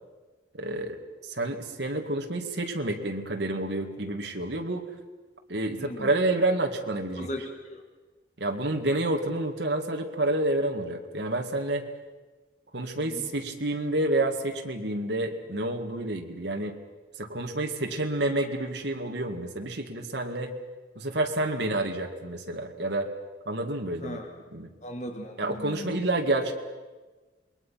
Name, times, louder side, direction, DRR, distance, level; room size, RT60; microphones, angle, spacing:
voice 1, 0.5-4.9 5.5-7.3 8.4-11.9 12.7-16.7 17.2-20.5 21.0-23.1 23.5-24.2 24.5-24.7 25.4-26.5, right 2 dB, 70° right, 3 dB, 2.2 m, -29 dB
voice 2, 5.8-6.1 7.2-7.8 13.0-13.3 24.0-24.3 24.8-26.0, equal, 40° left, 4 dB, 1.9 m, -38 dB
27.5 x 21.5 x 5.9 m, 1.3 s
head